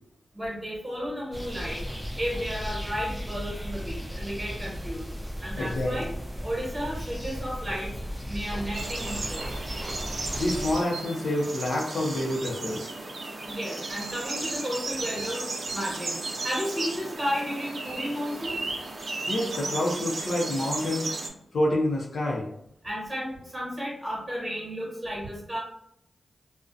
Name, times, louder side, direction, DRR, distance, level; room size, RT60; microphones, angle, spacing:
voice 1, 0.3-1.8 2.1-5.0 5.4-6.1 6.4-7.9 8.3-9.6 13.5-16.1 16.4-18.6 22.8-25.6, equal, 20° right, -4 dB, 1.1 m, -33 dB
sound 1, 1.3-10.8, equal, ahead, 0.6 m, -36 dB
voice 2, 5.6-6.1 10.3-12.9 19.3-21.1 21.5-22.5, left 1 dB, 80° left, -3 dB, 0.5 m, -28 dB
sound 2, 8.7-21.3, right 2 dB, 70° right, 0.4 m, -35 dB
2.4 x 2.1 x 2.4 m, 0.75 s
cardioid pair, 50°, 0 cm